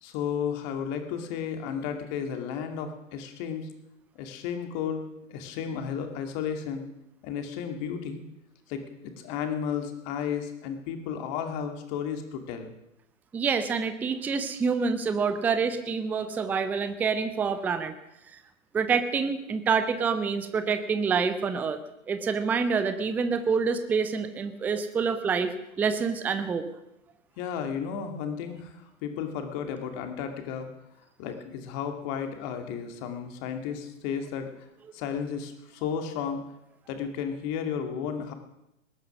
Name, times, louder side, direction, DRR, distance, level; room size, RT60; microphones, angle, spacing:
voice 1, 0.0-3.7 4.1-6.9 7.2-8.2 8.7-12.7 27.4-30.7 31.2-34.5 34.9-36.4 36.9-38.3, left 7 dB, 35° left, 6 dB, 2.4 m, -33 dB
voice 2, 13.3-17.9 18.7-21.8 22.1-26.7, right 5 dB, 5° right, 10 dB, 0.5 m, -27 dB
20.0 x 10.5 x 6.2 m, 0.86 s
figure-of-eight pair, 110°, 39 cm